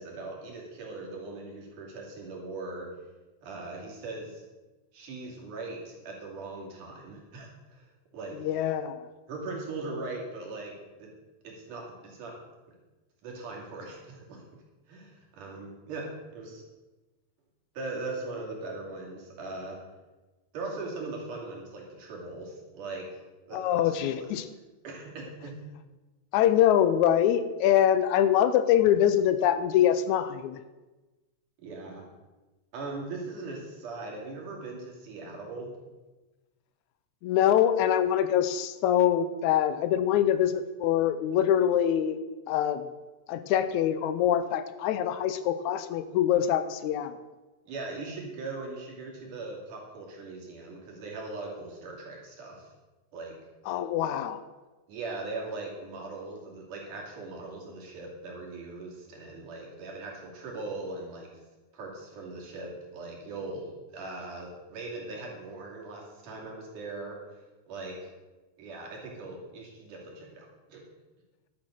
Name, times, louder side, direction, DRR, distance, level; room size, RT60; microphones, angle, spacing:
voice 1, 0.0-2.9 3.4-4.4 4.9-8.4 9.3-10.7 11.0-11.1 11.4-12.4 13.2-14.4 14.9-16.6 17.7-19.8 20.5-23.2 23.5-24.3 24.8-25.6 31.6-32.1 32.7-35.7 47.7-52.7 53.1-53.4 54.9-61.3 61.7-67.2 67.7-68.1 68.6-70.8, right 3 dB, 85° right, -1 dB, 4.1 m, -40 dB
voice 2, 8.4-9.1 23.5-24.5 26.3-30.6 37.2-42.2 42.5-42.9 43.3-47.2 53.7-54.4, left 10 dB, 75° left, 12 dB, 2.0 m, -24 dB
11.5 x 8.6 x 6.4 m, 1.2 s
omnidirectional pair, 3.5 m